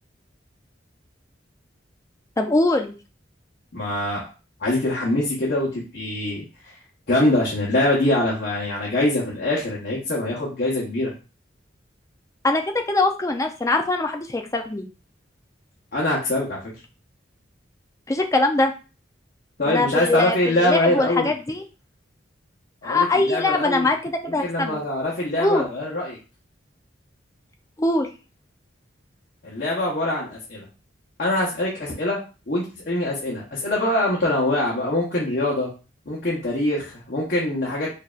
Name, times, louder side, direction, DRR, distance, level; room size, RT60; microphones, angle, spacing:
voice 1, 2.4-2.9 12.4-14.9 18.1-18.7 19.7-21.6 22.8-24.8 25.4-25.6 27.8-28.1, left 2 dB, 15° left, 5 dB, 0.4 m, -22 dB
voice 2, 3.7-4.2 4.6-6.4 7.1-11.1 15.9-16.6 19.6-21.3 22.8-23.9 24.2-26.2 29.4-30.6 31.2-32.2 32.5-35.7 36.1-37.9, left 1 dB, 55° left, -5 dB, 1.0 m, -23 dB
4.6 x 2.7 x 2.4 m, 0.33 s
head